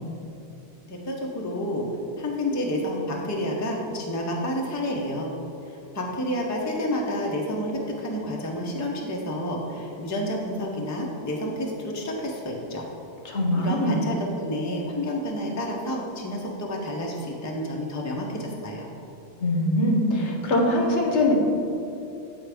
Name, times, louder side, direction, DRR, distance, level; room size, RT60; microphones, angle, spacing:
voice 1, 0.9-1.9 2.2-5.3 5.6-12.9 13.6-18.9, left 1 dB, 20° left, -1 dB, 0.6 m, -29 dB
voice 2, 13.2-14.0 19.4-21.3, left 1 dB, 75° left, 0 dB, 1.2 m, -22 dB
8.4 x 4.7 x 3.4 m, 2.8 s
omnidirectional pair, 1.2 m